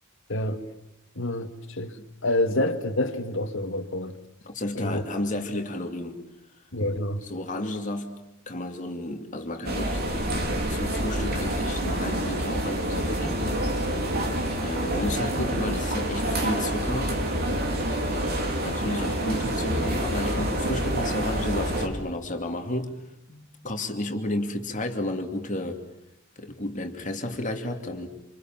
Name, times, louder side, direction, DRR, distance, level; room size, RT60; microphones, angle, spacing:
voice 1, 0.3-0.6 1.2-2.0 2.2-4.1 4.7-5.0 6.7-7.2, left 1 dB, 60° left, 2.2 m, -27 dB
voice 2, 4.4-6.2 7.2-8.2 8.5-10.0 10.7-13.6 14.6-17.2 18.6-23.0 23.3-25.8 26.4-28.1, left 1 dB, 35° left, 2.7 m, -32 dB
sound 1, 9.6-21.9, right 1 dB, 50° right, 4.5 m, -27 dB
28.0 x 28.0 x 7.6 m
head